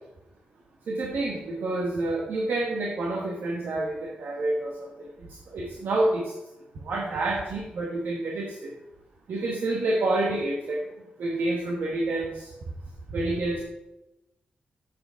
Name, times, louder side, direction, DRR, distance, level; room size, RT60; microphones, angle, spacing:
voice 1, 0.9-4.9 5.5-6.3 6.8-8.7 9.3-10.8 11.2-12.5 13.1-13.6, right 2 dB, 85° right, -1 dB, 1.4 m, -28 dB
7.7 x 6.6 x 5.6 m, 0.93 s
cardioid pair, 80°, 3 cm